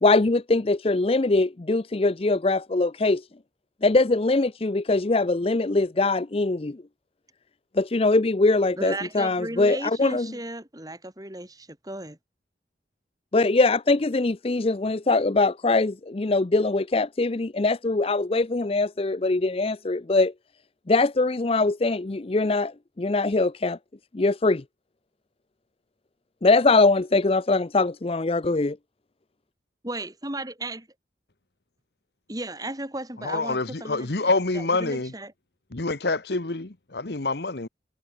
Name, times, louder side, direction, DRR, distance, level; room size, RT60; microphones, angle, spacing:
voice 1, 0.0-3.2 3.8-6.8 7.7-10.3 13.3-20.3 20.9-23.8 24.1-24.6 26.4-28.8, left 3 dB, 30° left, 0.5 m, -22 dB
voice 2, 8.8-12.2 29.8-30.9 32.3-35.3, right 1 dB, 20° right, 4.6 m, -35 dB
voice 3, 33.2-35.1 35.7-37.7, left 3 dB, 60° left, 1.2 m, -26 dB
head